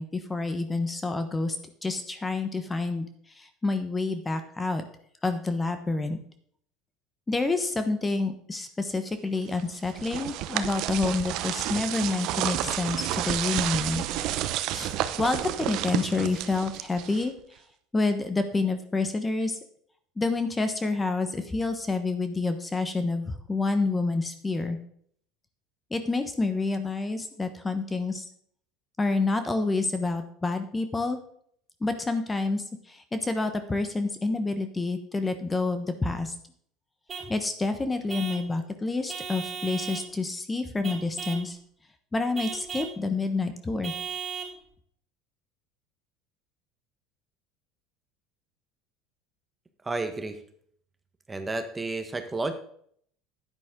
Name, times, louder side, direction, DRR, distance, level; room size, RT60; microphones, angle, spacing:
voice 1, 0.0-1.6 1.8-3.0 3.3-4.8 5.2-6.2 7.3-14.0 14.7-17.3 17.9-19.6 20.2-24.8 25.9-28.2 29.0-31.2 31.8-36.3 37.3-41.6 42.1-43.9, left 3 dB, 15° left, 8 dB, 1.2 m, -28 dB
sound 1, 9.6-17.4, right 13 dB, 60° right, 0.7 m, -30 dB
Vehicle horn car horn honking / Truck, 37.1-37.4 38.1-38.5 39.1-40.1 40.8-41.5 42.3-43.0 43.8-44.6, right 6 dB, 35° right, 4.6 m, -36 dB
voice 2, 49.8-50.4 51.3-52.5, right 3 dB, 15° right, 7 dB, 1.3 m, -31 dB
10.5 x 9.3 x 3.8 m, 0.63 s
supercardioid pair, 100°, 0 cm